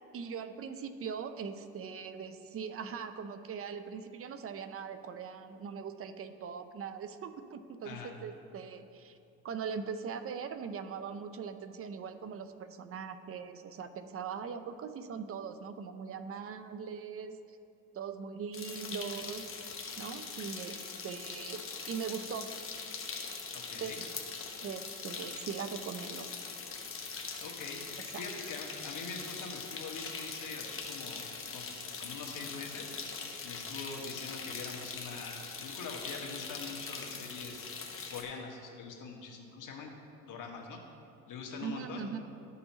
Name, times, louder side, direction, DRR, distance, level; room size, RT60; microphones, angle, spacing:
voice 1, 0.1-9.2 9.4-17.6 17.9-19.5 20.0-20.8 21.0-22.5 23.7-23.9 24.6-26.3 28.1-28.2 41.6-42.2, right 6 dB, 35° right, 9 dB, 0.6 m, -41 dB
sound 1, 18.5-38.2, left 5 dB, 35° left, 1.1 m, -42 dB
voice 2, 23.5-24.0 27.4-31.3 31.5-31.7 32.0-32.9 33.4-37.7 38.1-39.9 40.3-40.8 41.3-42.1, left 4 dB, 55° left, 0 dB, 1.5 m, -44 dB
13.0 x 5.5 x 2.9 m, 2.6 s
supercardioid pair, 95°, 38 cm